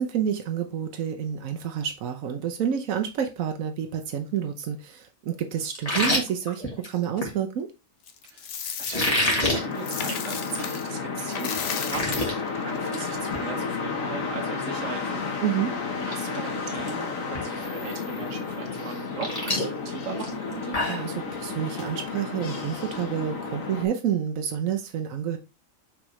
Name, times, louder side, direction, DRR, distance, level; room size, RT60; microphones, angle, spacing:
voice 1, 0.0-7.7 15.4-15.7 20.9-25.4, right 9 dB, 90° right, 1.2 m, -29 dB
sound 1, 5.7-7.3 8.8-9.6 10.0-10.2 10.6-10.7 11.2-11.3 11.5-12.3 12.7-13.0 13.3-13.5 15.3-15.4 15.9-16.2 16.4-16.9 17.3-17.4 18.8-21.1, left 1 dB, 30° left, 1.9 m, -27 dB
Coin (dropping), 8.1-10.9 11.2-13.5, left 7 dB, 65° left, 1.1 m, -35 dB
voice 2, 8.8-15.3 16.1-20.8, right 4 dB, 65° right, 1.4 m, -38 dB
sound 2, 9.5-23.8, left 4 dB, 90° left, 1.7 m, -32 dB
6.1 x 4.8 x 3.1 m
omnidirectional pair, 1.4 m